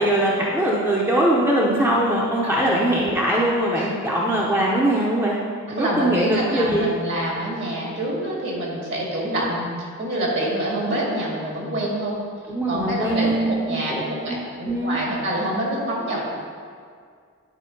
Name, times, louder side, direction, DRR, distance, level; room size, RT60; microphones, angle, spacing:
voice 1, 0.0-5.4 5.7-6.9 12.5-15.0, right 1 dB, 10° right, -4 dB, 0.7 m, -21 dB
voice 2, 5.8-12.2 12.7-16.2, right 1 dB, 55° right, -3 dB, 2.2 m, -26 dB
10.0 x 4.7 x 5.2 m, 2.1 s
head